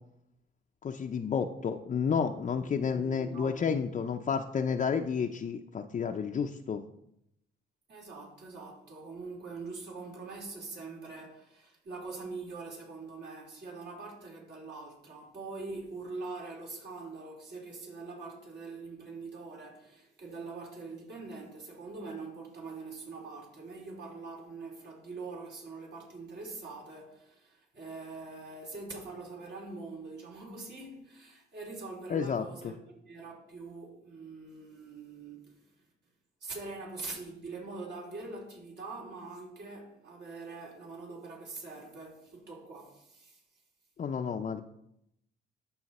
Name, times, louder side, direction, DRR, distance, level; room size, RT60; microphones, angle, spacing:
voice 1, 0.8-6.8 32.1-32.4 44.0-44.6, left 6 dB, 40° left, 0.6 m, -31 dB
voice 2, 2.6-3.6 7.9-35.6 36.4-43.4, right 3 dB, 60° right, 3.6 m, -43 dB
13.0 x 5.7 x 4.2 m
cardioid pair, 90°, 20 cm